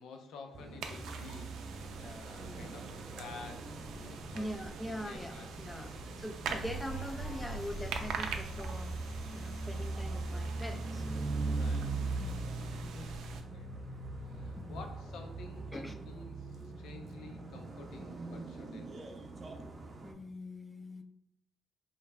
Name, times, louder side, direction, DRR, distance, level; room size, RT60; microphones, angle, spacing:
voice 1, 0.0-6.3 11.6-12.6 12.9-13.1 13.5-13.7 14.2-18.9, left 4 dB, 80° left, 4 dB, 0.6 m, -51 dB
sound 1, 0.5-20.1, right 3 dB, 40° right, 0.6 m, -41 dB
sound 2, 0.8-13.4, right 5 dB, 80° right, 0.4 m, -45 dB
voice 2, 2.4-2.8 4.3-8.9 9.3-11.0 12.7-13.2 14.5-14.8 15.7-15.9 20.0-21.0, equal, 10° left, 6 dB, 0.4 m, -43 dB
sound 3, 6.5-12.1 12.5-12.6, right 1 dB, 60° left, 0.9 m, -45 dB
5.3 x 2.4 x 2.3 m, 0.74 s
cardioid pair, 90°, 0 cm